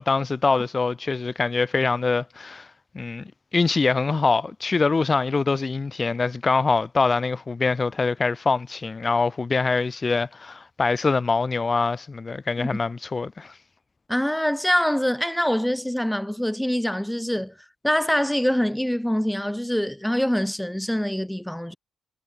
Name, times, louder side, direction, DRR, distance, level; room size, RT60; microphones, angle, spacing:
voice 1, 0.0-2.7 2.9-13.6, left 4 dB, 25° left, 3.6 m, -24 dB
voice 2, 14.1-17.5 17.8-21.8, equal, 5° left, 3.7 m, -24 dB
cardioid pair, 120°, 0 cm